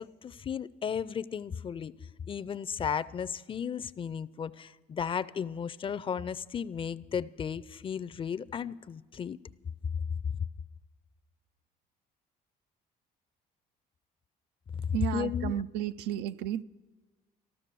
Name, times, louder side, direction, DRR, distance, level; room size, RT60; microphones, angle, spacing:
voice 1, 0.0-1.9 2.3-9.4 14.7-14.9 15.1-15.5, left 7 dB, 30° left, 0.4 m, -35 dB
voice 2, 14.9-16.6, right 11 dB, 85° right, 0.4 m, -33 dB
14.5 x 13.0 x 6.8 m
cardioid pair, 110°, 17 cm